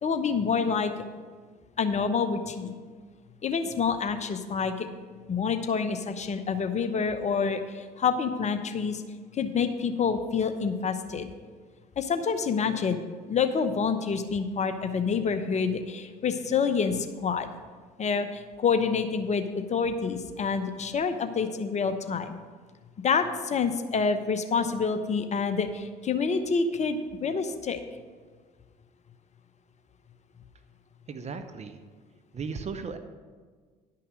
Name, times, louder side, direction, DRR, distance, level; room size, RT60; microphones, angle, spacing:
voice 1, 0.0-0.9 1.8-2.8 3.4-4.9 5.3-9.0 9.3-11.3 12.0-13.0 13.3-17.5 18.0-22.4 23.0-27.8, left 5 dB, 35° left, 9 dB, 0.9 m, -27 dB
voice 2, 31.1-31.8 32.3-33.0, right 5 dB, 35° right, 9 dB, 0.9 m, -36 dB
11.0 x 5.8 x 6.3 m, 1.5 s
hypercardioid pair, 60°, 19 cm